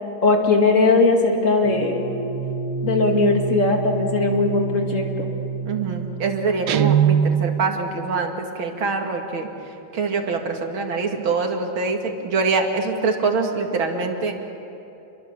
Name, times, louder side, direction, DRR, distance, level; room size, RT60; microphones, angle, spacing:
voice 1, 0.2-2.0 2.8-5.3, left 3 dB, 40° left, 2 dB, 2.6 m, -19 dB
sound 1, 1.6-6.8, right 5 dB, 10° right, 5.7 m, -29 dB
voice 2, 5.7-14.3, right 4 dB, 90° right, 3 dB, 2.8 m, -24 dB
Guitar, 6.7-7.8, right 9 dB, 65° right, 1.2 m, -19 dB
28.0 x 22.5 x 7.1 m, 2.9 s
omnidirectional pair, 2.1 m